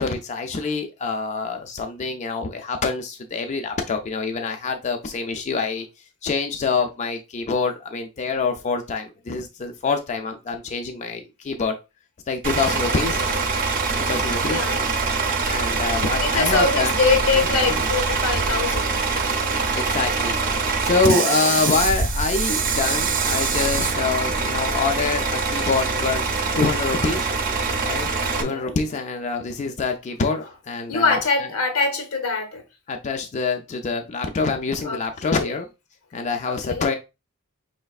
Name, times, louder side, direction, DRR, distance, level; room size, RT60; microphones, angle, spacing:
voice 1, 0.0-5.9 6.2-11.7 12.3-13.2 14.0-14.6 15.4-17.0 17.5-17.9 19.4-20.4 20.8-26.2 26.5-27.3 27.8-28.1 28.4-31.2 32.9-35.7 36.1-37.0, left 4 dB, 35° left, 0.4 m, -25 dB
Bus / Idling, 12.4-28.4, right 4 dB, 40° right, 0.6 m, -23 dB
voice 2, 13.1-13.4 14.5-14.8 15.5-15.6 16.2-19.0 28.3-28.8 30.9-32.6 34.8-35.0 35.3-35.5 36.5-36.9, left 4 dB, 85° left, 1.0 m, -24 dB
4.9 x 3.2 x 2.3 m
head